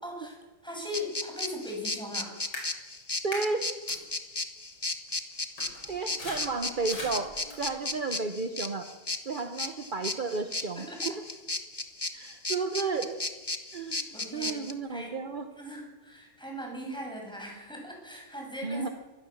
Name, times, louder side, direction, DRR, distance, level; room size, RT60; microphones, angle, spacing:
voice 1, 0.0-2.3 10.7-11.2 14.1-15.1 15.6-18.9, equal, ahead, 0 dB, 6.6 m, -39 dB
sound 1, 0.9-14.7, left 2 dB, 20° left, 0.8 m, -34 dB
sound 2, 2.5-2.7 3.3-3.4 3.9-4.0 5.1-5.2 5.6-7.9, left 1 dB, 65° left, 6.1 m, -41 dB
voice 2, 3.2-3.8 5.9-7.3 7.6-8.9 9.2-11.1 12.1-13.2 13.7-14.0 14.3-15.5 18.6-18.9, right 4 dB, 40° right, 7 dB, 0.7 m, -32 dB
24.0 x 16.5 x 7.2 m, 1.3 s
omnidirectional pair, 2.3 m